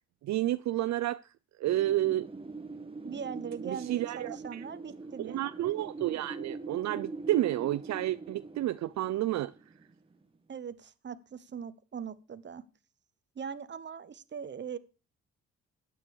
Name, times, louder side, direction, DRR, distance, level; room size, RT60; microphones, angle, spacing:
voice 1, 0.2-1.2 1.6-2.3 3.6-4.6 5.2-9.5, right 14 dB, 65° right, 0.5 m, -30 dB
Wind, 1.7-10.4, right 3 dB, 20° right, 1.7 m, -43 dB
voice 2, 2.9-5.4 10.5-12.6 13.3-14.8, right 7 dB, 35° right, 1.1 m, -40 dB
13.5 x 9.1 x 4.8 m
cardioid pair, 90°, 30 cm